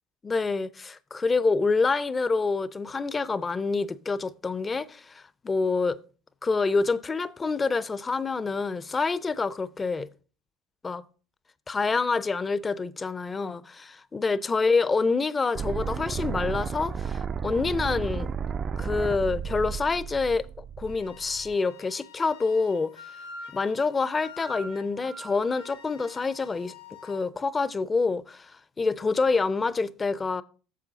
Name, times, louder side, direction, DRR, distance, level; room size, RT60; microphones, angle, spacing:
voice 1, 0.2-6.0 6.4-10.1 10.8-11.0 11.7-18.3 18.8-20.5 20.8-23.0 23.5-26.7 27.0-30.4, left 4 dB, 25° left, 0.5 m, -27 dB
sound 1, 15.5-21.5, right 6 dB, 35° right, 0.3 m, -33 dB
Wind instrument woodwind instrument, 20.9-27.2, left 2 dB, 85° left, 1.6 m, -46 dB
7.6 x 7.3 x 3.9 m
hypercardioid pair, 75°, 0 cm